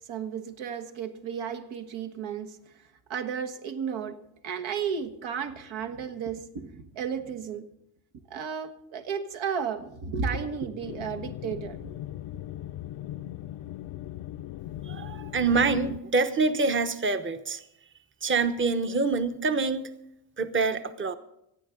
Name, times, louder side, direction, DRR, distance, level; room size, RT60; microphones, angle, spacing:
voice 1, 0.0-2.8 3.1-7.7 8.3-11.8, right 6 dB, 70° right, 1.5 m, -33 dB
sound 1, 10.8-16.0, left 13 dB, 65° left, 0.6 m, -39 dB
voice 2, 14.9-17.6 18.2-19.8 20.4-21.2, right 4 dB, 25° right, 1.0 m, -26 dB
26.0 x 9.6 x 3.9 m
cardioid pair, 90°, 48 cm